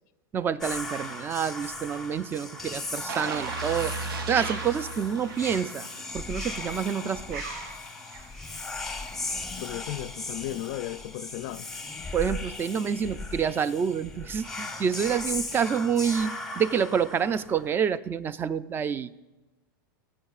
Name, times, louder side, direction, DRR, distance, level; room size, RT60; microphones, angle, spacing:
voice 1, 0.3-3.9 4.3-5.9 6.1-7.4 12.1-19.2, right 7 dB, 20° right, 0.3 m, -28 dB
Whispering, 0.6-17.7, left 2 dB, 5° left, 0.8 m, -37 dB
sound 1, 3.1-6.0 6.4-6.6, right 4 dB, 85° right, 0.7 m, -36 dB
sound 2, 4.3-9.4, right 4 dB, 70° right, 2.5 m, -43 dB
voice 2, 9.5-11.7, left 14 dB, 55° left, 0.4 m, -35 dB
17.5 x 8.6 x 2.4 m
supercardioid pair, 130°, 11 cm